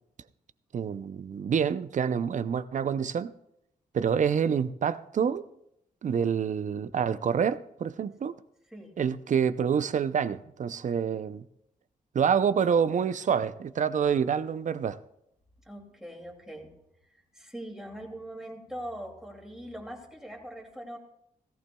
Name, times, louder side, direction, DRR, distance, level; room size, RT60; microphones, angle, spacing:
voice 1, 0.7-3.3 3.9-5.5 6.0-8.4 9.0-11.4 12.1-15.0, right 7 dB, 55° right, 0.5 m, -27 dB
voice 2, 8.7-9.0 15.6-16.7 17.3-21.0, right 1 dB, 5° right, 2.5 m, -41 dB
16.5 x 15.0 x 2.3 m
cardioid pair, 70°, 15 cm